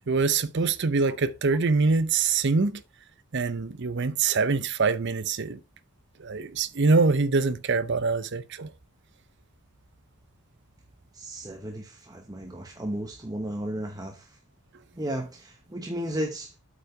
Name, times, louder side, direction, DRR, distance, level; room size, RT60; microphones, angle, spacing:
voice 1, 0.1-2.8 3.3-5.6 6.2-8.7, right 4 dB, 55° right, 0.7 m, -24 dB
voice 2, 11.1-14.4 14.9-16.5, right 1 dB, 15° right, 1.0 m, -34 dB
8.2 x 5.5 x 4.8 m
head